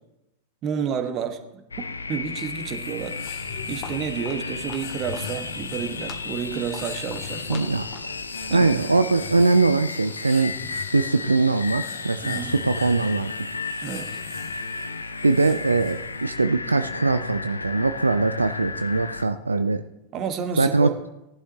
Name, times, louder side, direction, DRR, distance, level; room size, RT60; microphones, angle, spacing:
voice 1, 0.6-1.6 2.1-3.2 3.7-7.7 8.5-8.8 12.2-12.5 13.8-14.2 20.1-20.9, right 7 dB, 35° right, 7 dB, 1.3 m, -30 dB
sound 1, 1.7-19.3, left 4 dB, 75° left, 0.6 m, -34 dB
sound 2, 2.5-16.4, left 9 dB, 50° left, 1.0 m, -42 dB
Walk footsteps, 2.9-9.0, left 4 dB, 30° left, 1.6 m, -45 dB
voice 2, 7.5-7.8 8.5-10.5 10.9-13.3 15.2-19.8 20.6-20.9, right 3 dB, 80° right, 10 dB, 0.4 m, -21 dB
18.0 x 11.0 x 2.8 m, 0.91 s
figure-of-eight pair, 90°, 0 cm